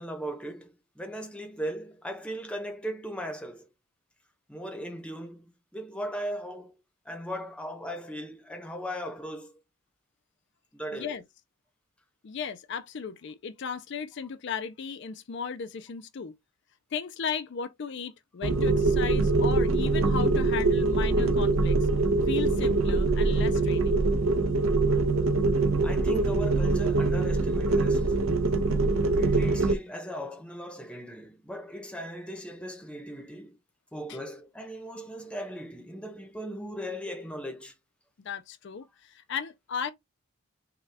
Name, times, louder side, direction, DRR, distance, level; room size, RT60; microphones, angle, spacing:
voice 1, 0.0-3.7 4.5-6.7 7.0-9.6 10.7-11.2 25.8-28.1 29.1-33.6 33.9-37.7, equal, 5° left, 0.8 m, -38 dB
voice 2, 10.9-11.2 12.2-16.3 16.9-21.9 22.3-24.0 34.1-34.2 38.2-39.9, left 6 dB, 55° left, 0.4 m, -36 dB
sound 1, 18.4-29.7, right 3 dB, 75° right, 0.7 m, -24 dB
5.7 x 2.3 x 3.3 m
head